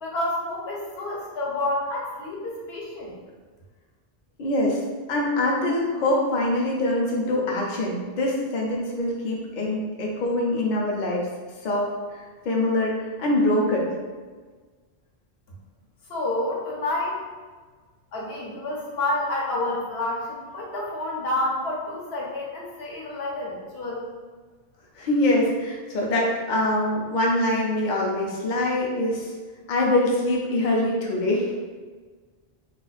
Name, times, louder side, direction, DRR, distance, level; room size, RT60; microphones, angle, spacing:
voice 1, 0.0-3.2 16.1-17.2 18.1-24.1, left 2 dB, 80° left, -4 dB, 1.0 m, -29 dB
voice 2, 4.4-4.8 5.1-11.3 11.6-13.9 25.0-29.3 29.7-31.5, left 1 dB, 55° left, -2 dB, 0.6 m, -24 dB
2.5 x 2.3 x 4.0 m, 1.4 s
omnidirectional pair, 1.1 m